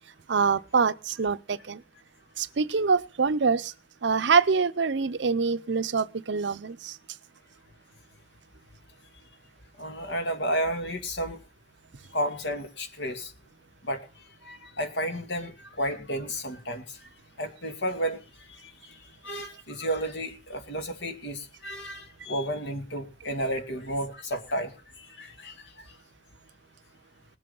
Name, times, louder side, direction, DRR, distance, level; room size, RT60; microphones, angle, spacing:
voice 1, 0.3-1.8 2.4-3.7 4.0-6.9, right 5 dB, 70° right, 0.6 m, -25 dB
voice 2, 9.8-11.4 12.1-13.3 13.8-17.1 17.4-26.0, equal, 75° left, 2.5 m, -32 dB
20.0 x 7.7 x 5.5 m
head